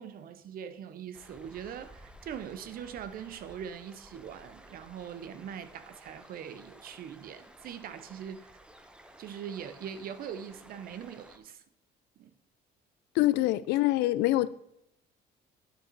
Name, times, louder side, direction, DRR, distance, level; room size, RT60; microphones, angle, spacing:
voice 1, 0.0-8.5 9.2-11.6 12.2-12.3, right 8 dB, 60° right, 0.8 m, -42 dB
sound 1, 1.1-11.4, right 1 dB, 5° right, 0.9 m, -54 dB
voice 2, 13.1-14.5, left 16 dB, 90° left, 0.5 m, -25 dB
9.3 x 6.4 x 4.6 m
cardioid pair, 110°, 17 cm